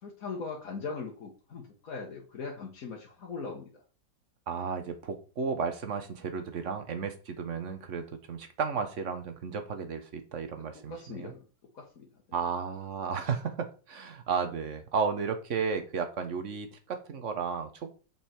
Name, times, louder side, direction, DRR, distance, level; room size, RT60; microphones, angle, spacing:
voice 1, 0.0-3.8 10.9-11.4 11.7-12.1, left 4 dB, 50° left, -1 dB, 1.5 m, -40 dB
voice 2, 4.5-11.3 12.3-17.9, right 5 dB, 50° right, 8 dB, 1.2 m, -33 dB
7.5 x 5.4 x 4.4 m, 0.37 s
omnidirectional pair, 2.0 m